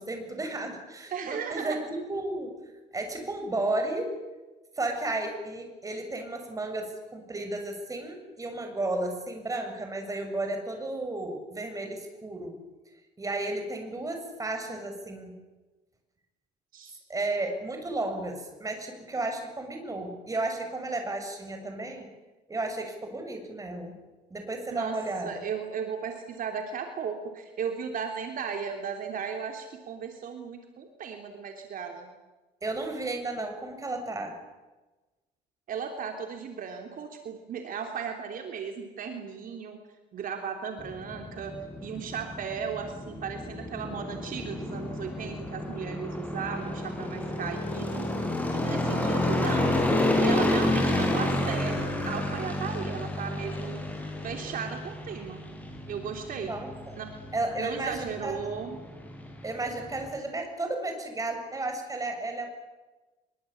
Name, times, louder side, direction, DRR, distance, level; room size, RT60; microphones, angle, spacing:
voice 1, 0.0-1.8 2.1-2.5 2.9-4.2 4.8-12.6 13.2-15.4 17.1-22.1 22.5-24.0 24.3-25.3 32.6-34.4 56.5-57.0 57.3-58.4 59.4-62.5, right 2 dB, 20° right, 5 dB, 7.1 m, -33 dB
voice 2, 1.1-1.8 16.7-17.0 24.7-25.0 25.2-32.1 35.7-39.8 40.1-41.5 41.8-48.1 48.5-49.7 50.2-53.8 54.2-55.4 55.9-56.6 57.0-57.1 57.6-58.8, right 6 dB, 55° right, 4 dB, 3.4 m, -36 dB
sound 1, 40.8-60.1, left 1 dB, 10° left, 7.4 m, -30 dB
24.5 x 23.0 x 8.8 m, 1.2 s
cardioid pair, 110°, 17 cm